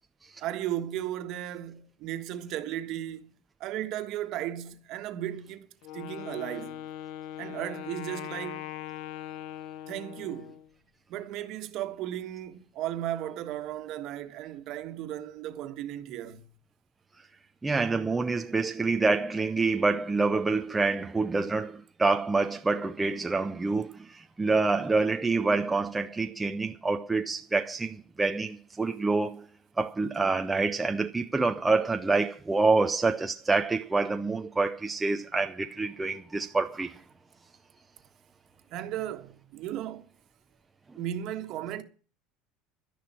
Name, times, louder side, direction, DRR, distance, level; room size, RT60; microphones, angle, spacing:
voice 1, 0.4-3.3 3.6-5.7 5.9-6.8 7.4-8.7 9.9-10.6 11.1-16.5 38.7-40.0 41.0-41.8, right 12 dB, 45° right, 1.5 m, -35 dB
Wind instrument woodwind instrument, 5.8-10.7, left 12 dB, 55° left, 0.7 m, -40 dB
voice 2, 17.6-29.5 29.8-37.0, right 3 dB, 10° right, 0.5 m, -27 dB
12.0 x 11.0 x 6.0 m
cardioid pair, 175°, 0 cm